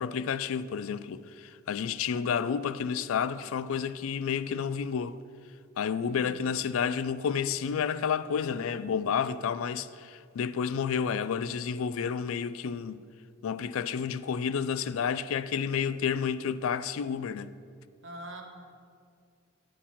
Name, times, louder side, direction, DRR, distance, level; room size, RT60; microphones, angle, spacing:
voice 1, 0.0-5.2 5.8-13.0 13.4-17.5, left 7 dB, 80° left, 0.3 m, -30 dB
voice 2, 6.0-6.3 18.0-18.4, right 1 dB, 60° right, 1.2 m, -43 dB
9.9 x 4.7 x 7.1 m
head